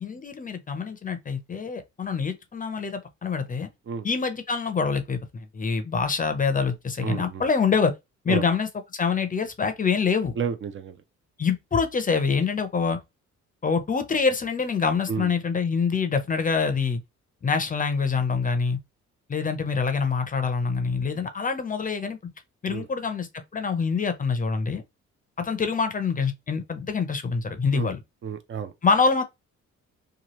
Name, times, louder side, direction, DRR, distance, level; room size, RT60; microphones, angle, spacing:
voice 1, 0.0-3.7 4.0-7.9 8.2-10.4 11.4-13.0 13.6-17.0 17.4-18.8 19.3-22.2 22.6-24.8 25.4-28.0 28.8-29.2, left 5 dB, 30° left, 0.6 m, -25 dB
voice 2, 7.0-7.4 8.3-8.4 10.4-10.9 15.1-15.3 22.7-22.8 27.7-27.9 28.2-28.7, right 7 dB, 40° right, 0.5 m, -30 dB
2.9 x 2.3 x 3.0 m
cardioid pair, 90°, 30 cm